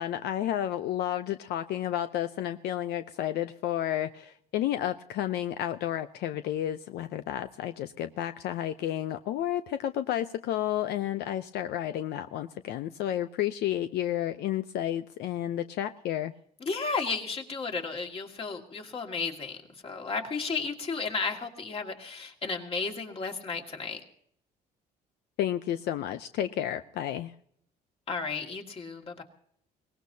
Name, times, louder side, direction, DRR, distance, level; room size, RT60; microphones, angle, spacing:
voice 1, 0.0-16.3 25.4-27.3, left 11 dB, 75° left, 10 dB, 0.6 m, -31 dB
voice 2, 16.6-19.6 19.8-24.0 28.1-29.2, left 4 dB, 35° left, 3 dB, 2.1 m, -33 dB
22.5 x 18.5 x 2.8 m, 0.66 s
cardioid pair, 110°, 17 cm